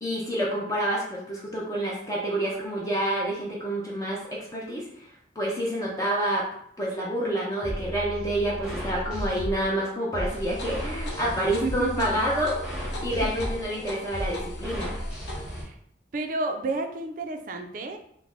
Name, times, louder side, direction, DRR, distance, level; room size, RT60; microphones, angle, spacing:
voice 1, 0.0-5.1 5.4-6.5 6.8-12.6 13.0-14.9, right 1 dB, 20° left, -4 dB, 0.4 m, -28 dB
sound 1, 7.6-15.6, equal, 5° right, 0.8 m, -34 dB
sound 2, 10.3-15.6, left 1 dB, 75° left, 0.8 m, -40 dB
voice 2, 11.4-12.1 13.0-13.3 15.5-15.8 16.1-18.0, right 3 dB, 45° right, 5 dB, 0.3 m, -32 dB
3.3 x 2.0 x 3.6 m, 0.69 s
head